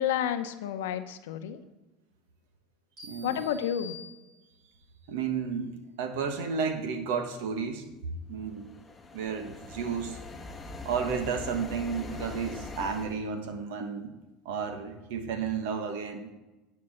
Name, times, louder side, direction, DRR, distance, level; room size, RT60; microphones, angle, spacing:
voice 1, 0.0-1.6 3.2-4.0, left 10 dB, 85° left, 9 dB, 0.8 m, -30 dB
sound 1, 3.0-4.8, left 4 dB, 40° right, 3.3 m, -48 dB
voice 2, 3.0-3.4 5.1-8.0 8.3-8.7 9.1-10.2 10.8-14.1 14.4-16.3, right 6 dB, 75° right, 6 dB, 1.3 m, -32 dB
sound 2, 8.5-13.2, left 3 dB, 15° left, 1.0 m, -42 dB
9.8 x 4.7 x 6.5 m, 1.1 s
supercardioid pair, 105°, 0 cm